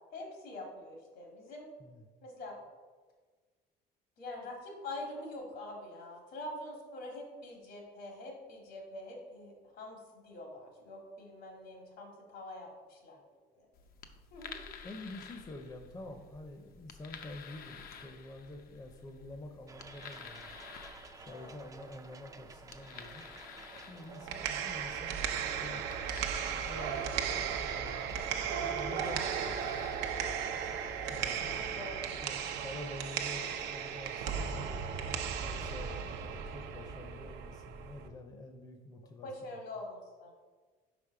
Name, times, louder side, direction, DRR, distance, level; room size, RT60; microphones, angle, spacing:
voice 1, 0.1-1.7 2.2-2.6 4.2-13.2 13.5-13.7 14.3-14.6 21.3-21.5 31.5-32.5 39.2-40.3, left 1 dB, 80° left, 0 dB, 2.0 m, -45 dB
sound 1, 13.7-31.6, left 6 dB, 60° left, 0.6 m, -53 dB
voice 2, 14.8-20.5 21.2-23.3 23.9-26.0 26.5-29.9 31.1-31.5 32.2-34.7 35.4-39.6, left 2 dB, 20° left, 5 dB, 0.6 m, -48 dB
sound 2, 19.7-31.0, right 4 dB, 20° right, 0.4 m, -53 dB
sound 3, 24.1-38.1, right 7 dB, 85° right, 0.6 m, -36 dB
5.2 x 5.1 x 4.8 m, 1.4 s
cardioid pair, 110°, 17 cm